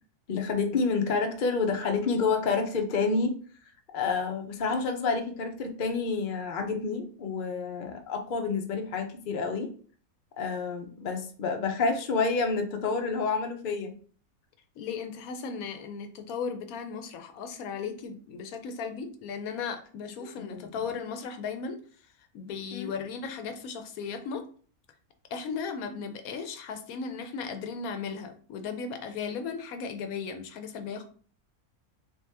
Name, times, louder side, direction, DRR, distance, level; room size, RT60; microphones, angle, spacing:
voice 1, 0.3-3.3 3.9-9.7 10.4-13.9 20.4-20.7 22.7-22.9, left 4 dB, 50° left, 4 dB, 0.6 m, -29 dB
voice 2, 14.8-21.8 22.3-24.4 25.3-31.0, left 5 dB, 75° left, 7 dB, 1.0 m, -36 dB
3.5 x 2.9 x 3.3 m, 0.43 s
omnidirectional pair, 1.6 m